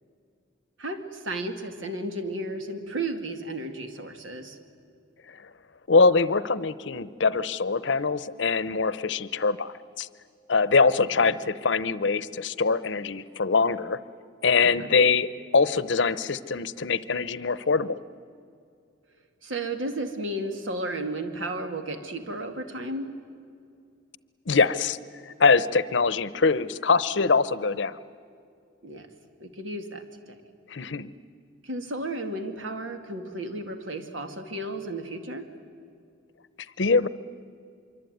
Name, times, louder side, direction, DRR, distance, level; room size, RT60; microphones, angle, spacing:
voice 1, 0.8-4.6 11.0-11.3 14.6-14.9 19.4-23.1 28.8-29.1 29.4-30.4 31.6-35.5, right 1 dB, 75° right, 7 dB, 2.3 m, -33 dB
voice 2, 5.9-10.1 10.5-14.0 14.4-15.3 15.5-18.0 24.5-25.0 25.3-28.0 30.7-31.1 36.8-37.1, left 4 dB, 65° left, 17 dB, 0.8 m, -23 dB
25.5 x 24.0 x 9.4 m, 2.4 s
head